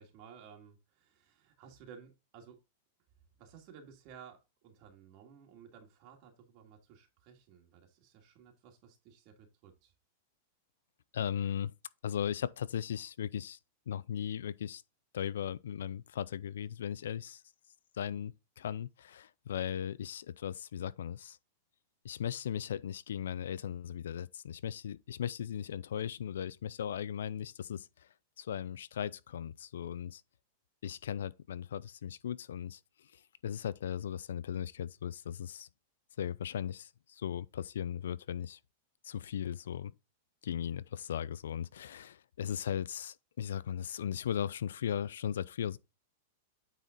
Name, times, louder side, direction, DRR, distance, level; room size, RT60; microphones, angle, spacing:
voice 1, 0.0-2.6 3.4-9.9, right 7 dB, 45° right, 2.0 m, -55 dB
voice 2, 11.1-11.7 12.0-13.6 13.9-14.8 15.1-17.4 17.9-21.4 22.0-28.1 28.4-30.2 30.8-35.7 36.2-38.6 39.0-39.9 40.4-45.8, left 9 dB, 85° left, 0.4 m, -37 dB
9.0 x 4.2 x 3.8 m
supercardioid pair, 145°, 0 cm